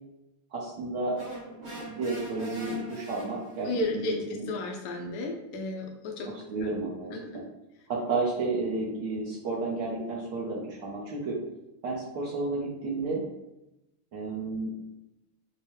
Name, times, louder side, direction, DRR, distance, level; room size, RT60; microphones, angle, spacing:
voice 1, 0.5-1.2 1.5-4.4 5.0-5.1 6.5-7.4 7.9-11.4 11.8-13.2 14.1-14.7, right 3 dB, 65° right, -5 dB, 1.2 m, -32 dB
sound 1, 1.1-3.8, right 2 dB, 80° right, 2.5 m, -42 dB
voice 2, 3.6-6.3 7.1-7.5, left 2 dB, 85° left, 1 dB, 0.8 m, -33 dB
4.6 x 2.1 x 3.0 m, 0.93 s
omnidirectional pair, 2.4 m